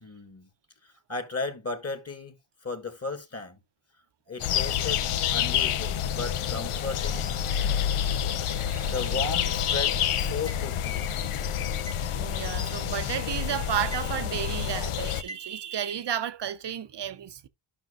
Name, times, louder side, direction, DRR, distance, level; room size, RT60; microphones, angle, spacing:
voice 1, 0.0-0.5 0.8-2.4 2.6-3.6 4.3-7.3 8.9-11.1, left 3 dB, 30° left, 1.6 m, -35 dB
sound 1, 4.4-15.2, left 9 dB, 80° left, 0.8 m, -28 dB
voice 2, 8.5-8.9 12.2-17.5, right 10 dB, 55° right, 0.8 m, -32 dB
sound 2, 9.7-11.0 11.9-13.3 13.6-14.5 15.3-16.2, right 1 dB, 10° left, 0.8 m, -45 dB
11.5 x 5.9 x 2.4 m
wide cardioid pair, 95°, 50 cm